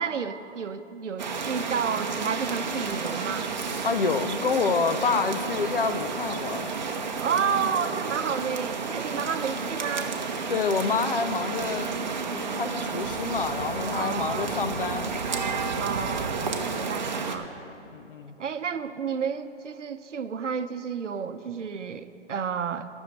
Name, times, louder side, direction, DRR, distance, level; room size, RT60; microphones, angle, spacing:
voice 1, 0.0-3.5 7.2-10.2 13.9-14.6 15.8-17.5 18.4-22.9, right 6 dB, 80° right, 11 dB, 0.7 m, -31 dB
sound 1, 1.2-17.4, right 4 dB, 40° right, 0.8 m, -31 dB
voice 2, 3.8-6.7 10.5-11.9 12.3-15.1 17.9-18.3, left 5 dB, 50° left, 10 dB, 0.6 m, -27 dB
10.0 x 6.4 x 8.2 m, 2.7 s
hypercardioid pair, 160°, 36 cm